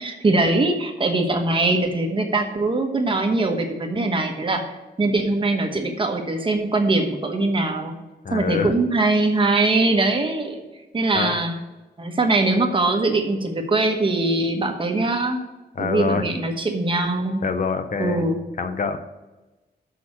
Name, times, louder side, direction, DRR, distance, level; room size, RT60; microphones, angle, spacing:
voice 1, 0.0-4.6 5.0-7.9 8.3-10.6 10.9-11.5 12.0-15.4 15.8-17.4 18.0-18.4, right 2 dB, 30° right, 4 dB, 1.1 m, -22 dB
voice 2, 8.2-8.7 11.1-11.3 15.8-16.3 17.4-18.3 18.6-19.0, left 5 dB, 50° left, 8 dB, 0.6 m, -25 dB
6.3 x 6.2 x 7.2 m, 1.1 s
wide cardioid pair, 160°, 17 cm